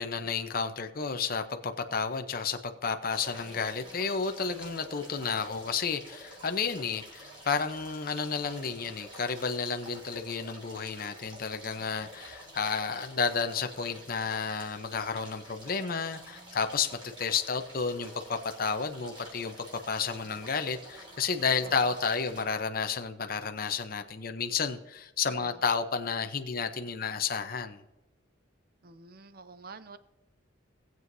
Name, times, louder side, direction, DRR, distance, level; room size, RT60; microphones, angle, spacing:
voice 1, 0.0-27.8, left 5 dB, 45° left, 7 dB, 0.7 m, -31 dB
sound 1, 3.1-22.4, right 1 dB, 25° right, 3.6 m, -48 dB
voice 2, 28.8-30.0, right 4 dB, 50° right, 12 dB, 0.6 m, -48 dB
19.0 x 7.7 x 2.7 m, 1.0 s
head